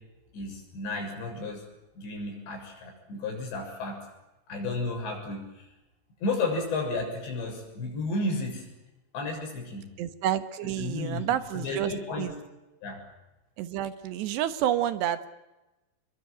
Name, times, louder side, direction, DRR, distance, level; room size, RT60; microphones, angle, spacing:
voice 1, 0.3-1.6 2.0-4.0 4.5-5.7 6.2-8.7 9.1-9.9 10.6-12.3 12.8-13.0, left 2 dB, 90° left, 2 dB, 9.1 m, -33 dB
voice 2, 10.0-12.3 13.6-15.3, right 11 dB, 80° right, 11 dB, 3.4 m, -29 dB
28.0 x 22.5 x 8.0 m, 1.0 s
omnidirectional pair, 4.9 m